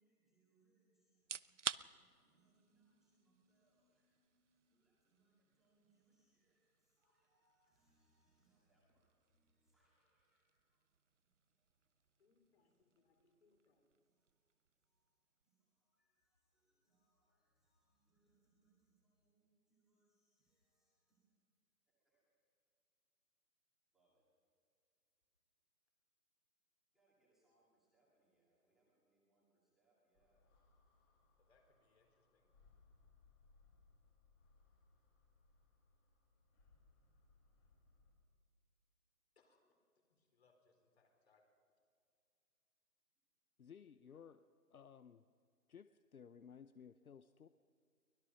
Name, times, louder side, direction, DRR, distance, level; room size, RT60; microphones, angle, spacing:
voice 1, 0.0-10.9 11.2-12.2 12.6-13.1 14.0-14.5 14.8-21.3 21.9-22.4 23.9-24.2 26.9-30.4, right 2 dB, ahead, -7 dB, 2.1 m, -81 dB
sound 1, 1.1-16.0, right 7 dB, 50° right, 0.5 m, -54 dB
voice 2, 12.2-13.9 31.4-32.5 39.3-39.6 40.0-41.4, left 4 dB, 40° left, 4 dB, 4.4 m, -76 dB
sound 2, 30.1-38.1, left 4 dB, 15° left, 2.3 m, -71 dB
voice 3, 43.6-45.2 45.7-47.5, left 7 dB, 65° left, 12 dB, 0.8 m, -58 dB
23.5 x 20.0 x 5.7 m, 2.2 s
figure-of-eight pair, 160°, 47 cm